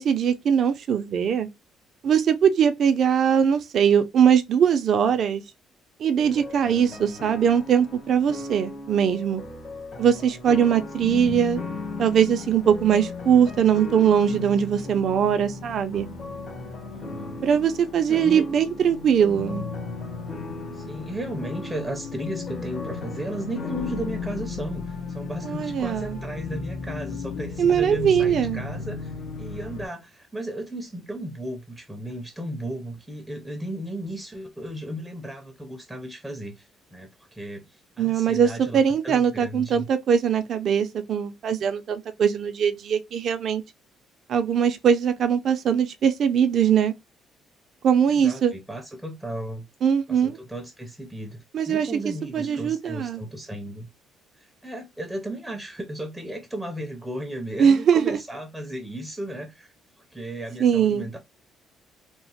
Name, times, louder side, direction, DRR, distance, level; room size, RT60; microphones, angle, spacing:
voice 1, 0.0-1.5 2.0-5.4 6.0-9.4 10.0-11.6 12.0-16.1 17.4-19.6 25.4-26.2 27.6-28.6 38.0-43.6 44.3-46.9 47.8-48.5 49.8-50.4 51.5-51.9 52.3-53.2 57.6-58.2 60.6-61.1, right 8 dB, 55° right, 0.4 m, -21 dB
sound 1, 6.2-24.5, left 2 dB, 50° left, 0.9 m, -39 dB
sound 2, 11.0-29.9, left 5 dB, 70° left, 0.6 m, -36 dB
voice 2, 16.9-17.4 18.1-18.4 20.7-39.9 48.1-49.7 50.1-53.9 54.4-59.7 60.1-61.2, right 1 dB, 5° right, 0.5 m, -35 dB
2.9 x 2.0 x 2.8 m
cardioid pair, 115°, 0 cm